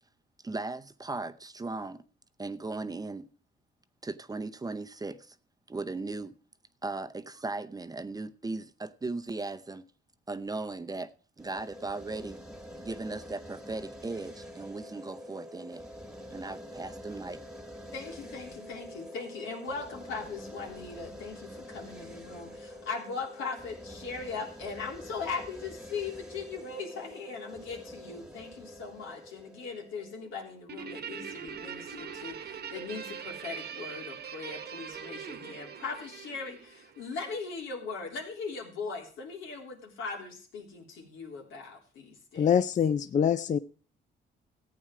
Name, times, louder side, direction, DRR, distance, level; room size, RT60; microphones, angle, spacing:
voice 1, 0.4-2.0 2.4-3.3 4.0-5.4 5.7-6.4 6.8-9.9 10.3-11.1 11.4-12.4 12.8-15.8 16.3-17.4, right 3 dB, 20° right, 0.7 m, -37 dB
sound 1, 11.4-30.5, equal, 5° right, 1.5 m, -46 dB
voice 2, 17.9-42.6, left 4 dB, 90° left, 3.4 m, -39 dB
Guitar, 30.7-37.4, right 7 dB, 55° right, 1.2 m, -42 dB
voice 3, 42.4-43.6, left 8 dB, 40° left, 0.5 m, -24 dB
14.5 x 8.7 x 4.8 m
cardioid pair, 90°, 20 cm